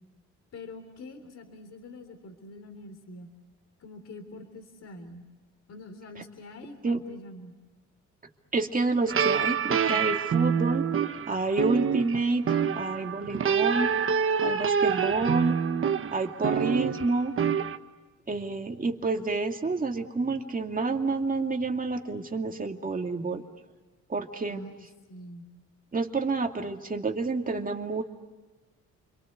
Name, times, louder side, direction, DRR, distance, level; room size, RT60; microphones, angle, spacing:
voice 1, 0.5-3.3 3.8-5.3 5.7-7.6 24.5-25.5, left 2 dB, 55° left, 6 dB, 3.7 m, -45 dB
voice 2, 8.5-10.9 11.3-13.9 14.4-15.6 16.1-17.3 18.3-23.4 24.1-24.6 25.9-28.0, right 3 dB, 30° right, 4 dB, 2.4 m, -28 dB
sound 1, 9.1-17.8, right 7 dB, 45° right, 1.3 m, -26 dB
29.5 x 23.0 x 8.2 m, 1.2 s
cardioid pair, 90°, 30 cm